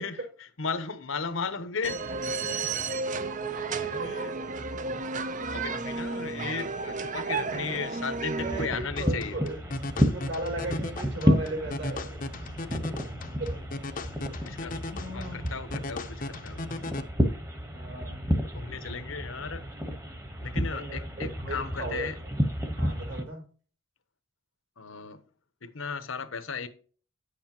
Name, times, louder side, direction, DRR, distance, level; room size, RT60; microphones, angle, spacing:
voice 1, 0.0-2.7 3.7-4.4 5.5-9.4 14.4-14.8 15.1-16.8 18.5-19.6 20.4-22.1 24.8-25.2 25.6-26.7, left 5 dB, 75° left, 1.0 m, -36 dB
sound 1, 1.8-8.7, right 4 dB, 40° right, 0.6 m, -32 dB
sound 2, 8.4-23.2, equal, 15° right, 1.2 m, -31 dB
voice 2, 8.4-12.5 13.4-13.6 14.9-15.5 17.7-18.2 20.5-22.1 22.8-23.4, right 2 dB, 65° right, 4.8 m, -37 dB
sound 3, 9.0-17.0, left 2 dB, 40° left, 0.7 m, -38 dB
9.8 x 7.8 x 2.9 m
head